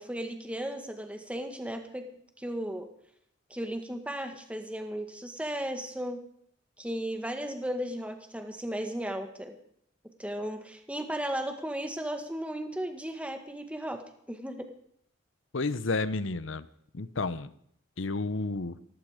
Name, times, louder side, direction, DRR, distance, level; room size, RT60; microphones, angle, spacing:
voice 1, 0.0-2.1 2.4-2.9 3.5-6.2 6.8-9.6 10.2-14.0 14.3-14.7, right 1 dB, 5° right, 5 dB, 1.7 m, -35 dB
voice 2, 15.5-16.7 16.9-17.5 18.0-18.8, left 3 dB, 70° left, 15 dB, 0.9 m, -31 dB
18.0 x 15.5 x 5.1 m, 0.68 s
head